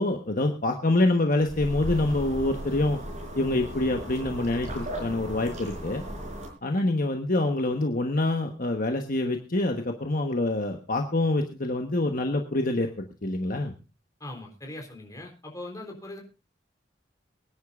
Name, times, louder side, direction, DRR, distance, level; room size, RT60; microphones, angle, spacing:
voice 1, 0.0-3.0 3.3-6.0 6.6-12.9 13.2-13.7, left 2 dB, 50° left, 4 dB, 1.2 m, -26 dB
sound 1, 1.4-6.5, equal, 40° right, 4.7 m, -36 dB
voice 2, 14.2-16.2, left 1 dB, 20° left, 1 dB, 3.7 m, -40 dB
24.0 x 10.0 x 2.5 m, 0.29 s
head